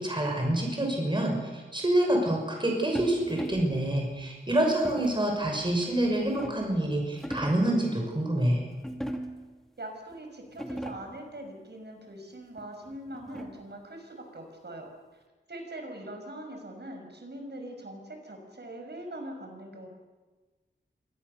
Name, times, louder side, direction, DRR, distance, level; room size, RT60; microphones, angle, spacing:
voice 1, 0.0-8.7, right 1 dB, 25° right, 1 dB, 5.9 m, -27 dB
sound 1, 3.0-3.8 4.8-5.3 5.9-6.8 7.1-7.8 8.8-9.5 10.1-10.2 10.5-11.2 12.6-13.7, equal, ahead, 2.7 m, -38 dB
voice 2, 9.8-14.9 15.5-19.9, right 1 dB, 60° right, 4 dB, 5.9 m, -42 dB
26.0 x 20.5 x 6.8 m, 1.3 s
wide cardioid pair, 85°, 19 cm